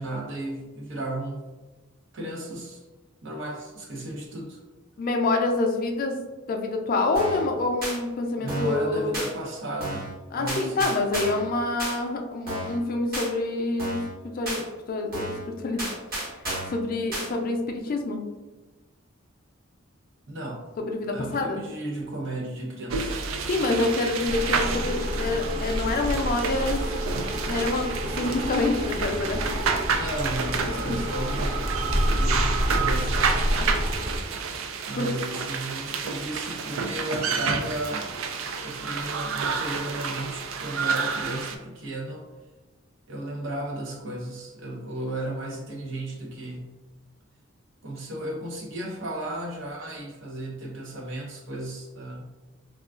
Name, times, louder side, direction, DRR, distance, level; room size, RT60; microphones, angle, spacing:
voice 1, 0.0-1.4 2.1-2.8 3.2-4.6 8.4-10.9 20.3-20.6 21.1-23.2 29.9-31.6 31.9-33.4 34.9-38.1 38.5-42.2 43.1-46.8 47.8-52.2, right 1 dB, 70° right, 0 dB, 0.7 m, -34 dB
voice 2, 5.0-6.2 6.5-9.2 10.3-14.0 14.3-15.9 16.7-18.2 20.8-21.6 23.5-26.8 27.5-29.4 29.7-29.8 30.9-31.0 33.5-33.7 35.0-35.1, left 2 dB, 45° left, 3 dB, 0.4 m, -27 dB
sound 1, 7.1-7.5 7.8-8.0 8.5-8.8 9.1-9.3 9.8-10.1 10.5-11.5 11.8-12.0 12.5-12.8 13.1-13.3 13.8-14.1 14.4-14.6 15.1-15.4 15.8-16.8 17.1-17.3, right 1 dB, 50° right, 1.4 m, -32 dB
sound 2, 22.9-41.6, right 5 dB, 85° right, 0.4 m, -30 dB
sound 3, 24.2-34.2, equal, 30° right, 0.6 m, -29 dB
3.7 x 2.3 x 2.3 m, 1.2 s
head